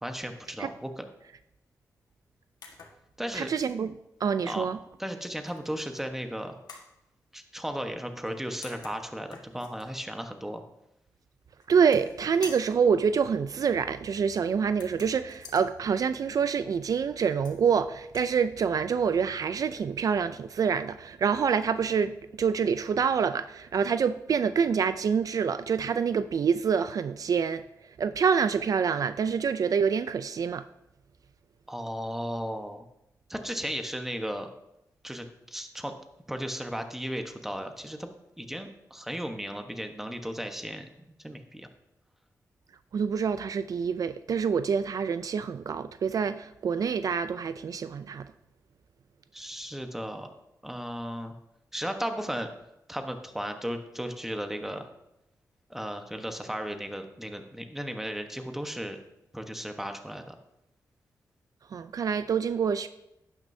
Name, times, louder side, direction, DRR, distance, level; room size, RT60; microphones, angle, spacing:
voice 1, 0.0-1.0 3.2-3.5 4.4-4.7 5.0-6.6 7.3-10.6 31.7-32.8 33.3-34.5 35.0-35.9 36.3-38.1 38.4-40.8 41.2-41.7 49.3-50.3 50.6-51.3 51.7-52.5 52.9-54.9 55.7-59.0 59.3-60.3, equal, 5° right, 1.1 m, -35 dB
sound 1, 2.6-3.0 3.4-3.8 5.5-6.0 6.7-6.9 8.3-8.4 8.6-9.9 11.6-12.2 12.4-12.8 14.7-15.7 17.2-17.7 18.0-18.3, left 4 dB, 85° left, 1.6 m, -47 dB
voice 2, 3.3-3.9 4.2-4.8 11.7-27.6 28.0-30.6 42.9-48.3 61.7-62.9, right 6 dB, 65° right, 0.4 m, -26 dB
11.5 x 9.4 x 2.7 m
cardioid pair, 80°, 7 cm